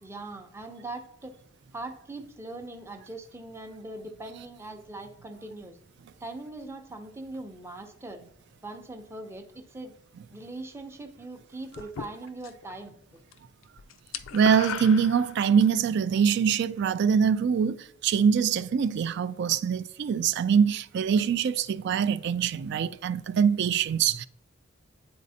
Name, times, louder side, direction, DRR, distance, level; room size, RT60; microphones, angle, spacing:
voice 1, 0.0-1.4 1.7-5.8 6.2-8.2 8.6-9.9 10.3-13.0, right 2 dB, 15° right, 0.6 m, -41 dB
sound 1, 11.7-12.7 13.0-13.4 13.6-15.7, left 8 dB, 85° left, 0.4 m, -38 dB
voice 2, 14.3-24.3, right 7 dB, 60° right, 0.3 m, -24 dB
9.5 x 4.1 x 2.7 m
head